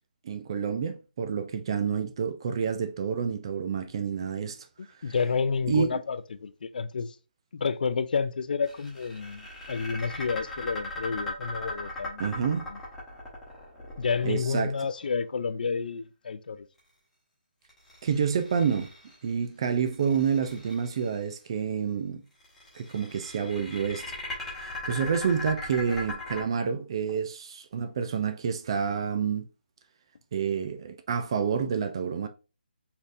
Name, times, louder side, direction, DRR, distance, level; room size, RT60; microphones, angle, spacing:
voice 1, 0.2-4.6 5.1-5.2 5.7-6.0 12.2-12.7 14.2-14.7 18.0-18.9 19.2-22.2 22.7-24.0 24.5-29.5 30.3-32.3, right 6 dB, 30° right, 0.3 m, -28 dB
voice 2, 4.8-7.2 7.5-12.5 12.7-12.8 14.0-16.7, left 5 dB, 55° left, 0.4 m, -30 dB
sound 1, 8.7-14.9 17.7-19.3 19.8-21.1 22.4-26.4, left 2 dB, 5° left, 1.1 m, -39 dB
4.2 x 3.5 x 2.5 m
hypercardioid pair, 165°, 6 cm